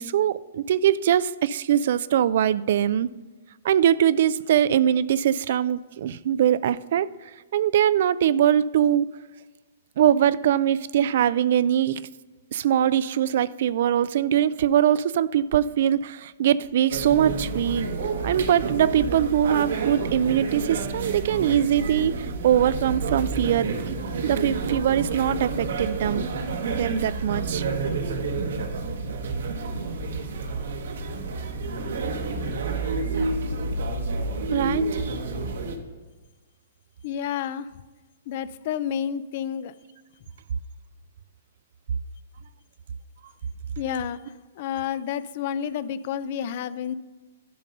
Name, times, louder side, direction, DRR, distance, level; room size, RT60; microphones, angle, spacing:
voice 1, 0.0-3.1 3.6-7.1 7.5-9.1 10.0-12.0 12.5-17.9 18.2-26.3 26.7-27.6 34.5-35.0, right 10 dB, 60° right, 17 dB, 0.3 m, -22 dB
sound 1, 16.9-35.8, right 3 dB, 75° right, 1.2 m, -29 dB
voice 2, 37.0-37.7 38.3-39.7 43.8-46.9, left 9 dB, 50° left, 16 dB, 0.4 m, -30 dB
11.0 x 5.2 x 5.4 m, 1.3 s
hypercardioid pair, 140°, 0 cm